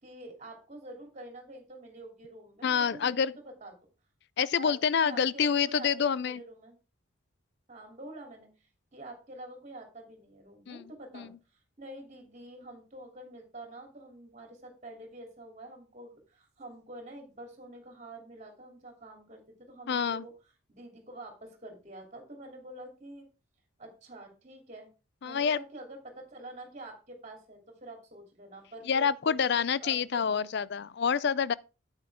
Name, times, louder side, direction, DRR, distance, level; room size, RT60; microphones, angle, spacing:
voice 1, 0.0-3.8 4.5-6.8 7.7-11.3 11.8-20.3 20.7-23.3 23.8-24.9 25.2-30.6, right 1 dB, 35° right, 3.1 m, -47 dB
voice 2, 2.6-3.3 4.4-6.4 10.7-11.3 19.9-20.3 25.2-25.6 28.9-31.5, left 6 dB, 50° left, 0.4 m, -27 dB
9.3 x 8.8 x 3.6 m
head